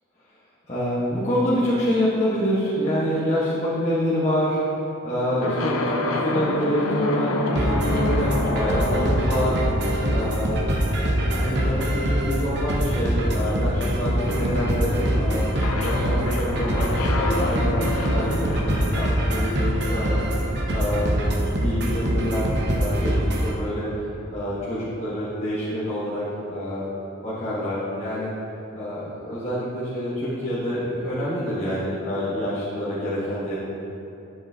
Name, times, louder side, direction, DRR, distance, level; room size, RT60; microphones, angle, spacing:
voice 1, 0.7-10.7 11.2-15.5 15.8-21.3 21.6-23.9 24.3-26.8 27.2-28.3 28.7-33.6, equal, 30° left, -10 dB, 1.2 m, -27 dB
sound 1, 5.4-21.2, left 2 dB, 85° left, 0.8 m, -30 dB
sound 2, 7.6-23.5, right 1 dB, 50° right, 0.9 m, -24 dB
11.5 x 7.1 x 2.8 m, 3.0 s
head